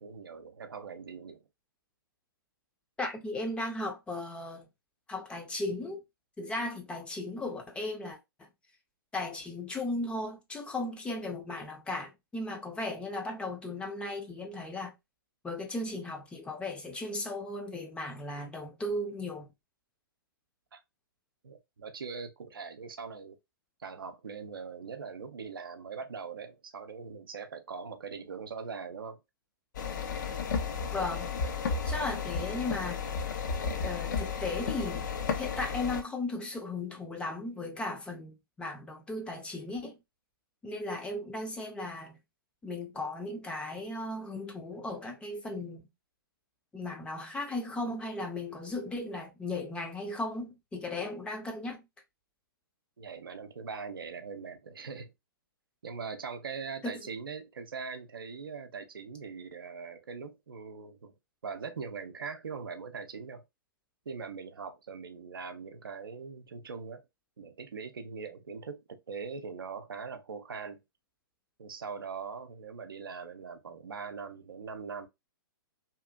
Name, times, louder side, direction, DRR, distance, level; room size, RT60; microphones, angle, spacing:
voice 1, 0.0-1.4 20.7-20.8 21.4-23.4 23.8-29.2 31.9-32.4 53.0-55.1 55.8-61.1 61.4-63.4 64.1-67.0 67.4-70.8 71.6-75.1, right 5 dB, 70° right, 0.5 m, -41 dB
voice 2, 3.0-4.7 5.1-6.0 6.4-8.5 9.1-14.9 15.4-19.5 30.9-31.3 31.8-33.0 33.8-35.0 35.4-40.0 40.6-42.2 42.6-45.9 46.7-51.8 56.8-57.0, left 2 dB, 10° left, 0.5 m, -36 dB
sound 1, 29.7-36.0, left 5 dB, 55° left, 0.5 m, -33 dB
2.8 x 2.4 x 2.2 m
figure-of-eight pair, 115°, 12 cm